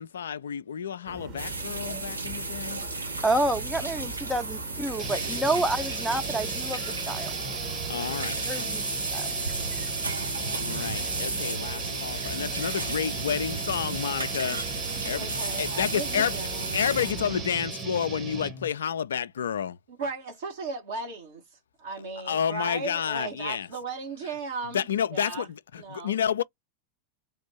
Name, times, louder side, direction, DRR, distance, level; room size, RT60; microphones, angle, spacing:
voice 1, 0.0-2.8 7.9-8.8 10.3-14.6 15.1-16.3 16.7-19.8 22.3-23.7 24.7-26.4, left 8 dB, 65° left, 0.3 m, -30 dB
sound 1, 1.0-17.5, right 3 dB, 40° right, 1.3 m, -42 dB
sound 2, 1.4-17.1, right 3 dB, 80° right, 0.8 m, -34 dB
voice 2, 3.2-7.3 8.5-8.8 9.1-9.3, right 1 dB, 5° right, 0.6 m, -28 dB
sound 3, 5.0-18.7, right 5 dB, 25° right, 1.1 m, -37 dB
voice 3, 15.2-17.2 19.9-25.5 25.8-26.2, right 3 dB, 60° right, 1.3 m, -37 dB
3.5 x 2.5 x 4.2 m
figure-of-eight pair, 90°, 0 cm